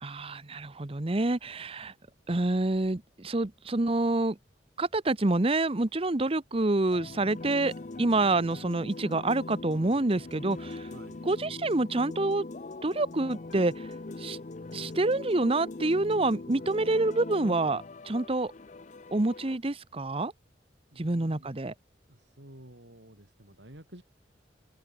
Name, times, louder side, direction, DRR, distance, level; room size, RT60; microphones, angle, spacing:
voice 1, 0.0-1.9 2.3-4.4 4.8-10.9 11.3-12.5 12.8-13.9 14.2-14.4 14.7-18.5 19.1-20.3 21.0-21.7, right 2 dB, 35° right, 0.9 m, -27 dB
sound 1, 6.9-19.6, left 2 dB, 45° left, 0.7 m, -41 dB
voice 2, 10.9-11.2 20.9-21.5 22.1-24.0, right 1 dB, 85° right, 6.1 m, -51 dB
open air
head